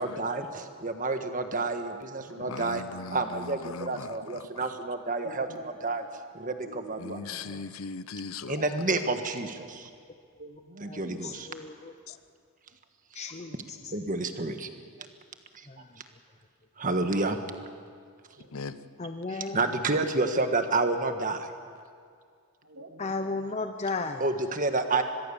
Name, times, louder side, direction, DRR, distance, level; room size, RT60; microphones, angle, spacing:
voice 1, 0.0-2.8 3.1-5.5 5.8-6.0 6.3-7.4 8.5-9.9 10.8-11.5 13.9-14.7 16.8-17.4 19.3-21.5 24.2-25.0, right 3 dB, 35° right, 7 dB, 1.5 m, -29 dB
voice 2, 2.4-4.7 7.0-8.6 12.1-12.2 18.5-18.8, left 4 dB, 70° left, 13 dB, 0.8 m, -39 dB
voice 3, 5.2-5.6 6.6-7.0 10.4-11.3 13.3-14.3 15.6-15.7 18.3-18.9 22.6-23.5, right 1 dB, 60° right, 5 dB, 2.0 m, -49 dB
voice 4, 10.9-11.9 13.2-13.5 19.0-19.6 23.0-24.2, left 3 dB, 30° left, 7 dB, 0.7 m, -34 dB
25.0 x 21.0 x 7.1 m, 2.2 s
head